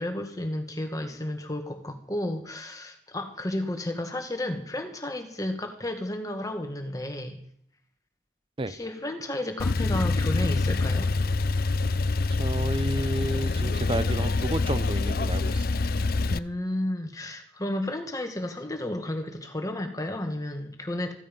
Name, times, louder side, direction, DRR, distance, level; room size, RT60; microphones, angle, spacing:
voice 1, 0.0-7.4 8.7-11.1 16.3-21.1, left 1 dB, 20° left, 2.0 m, -32 dB
Male speech man speaking / Car / Idling, 9.6-16.4, left 3 dB, 50° left, 0.6 m, -26 dB
voice 2, 12.3-15.7, right 1 dB, 30° right, 0.8 m, -31 dB
15.5 x 14.5 x 5.5 m
head